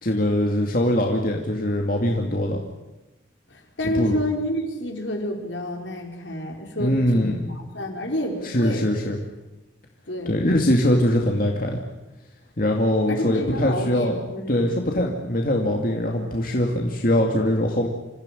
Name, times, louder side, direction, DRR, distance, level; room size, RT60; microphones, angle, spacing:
voice 1, 0.0-2.6 3.8-4.2 6.8-7.4 8.4-9.2 10.3-11.8 12.6-14.2 14.5-17.9, left 1 dB, 45° left, 1 dB, 2.4 m, -22 dB
voice 2, 3.5-8.8 10.1-10.5 13.1-14.8, left 1 dB, 75° left, 2 dB, 4.6 m, -29 dB
27.0 x 15.5 x 9.9 m, 1.1 s
head